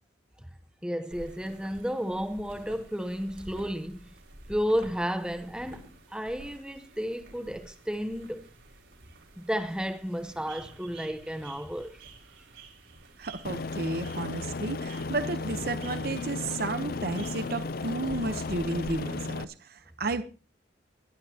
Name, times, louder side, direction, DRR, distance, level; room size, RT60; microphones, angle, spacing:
voice 1, 0.8-4.1 4.5-8.5 9.4-12.0, equal, 5° right, 0.8 m, -32 dB
sound 1, 1.1-19.2, right 2 dB, 85° right, 4.6 m, -50 dB
voice 2, 13.2-20.2, right 2 dB, 50° right, 0.9 m, -32 dB
Aircraft, 13.4-19.4, left 3 dB, 50° left, 0.5 m, -34 dB
22.0 x 11.5 x 2.9 m
head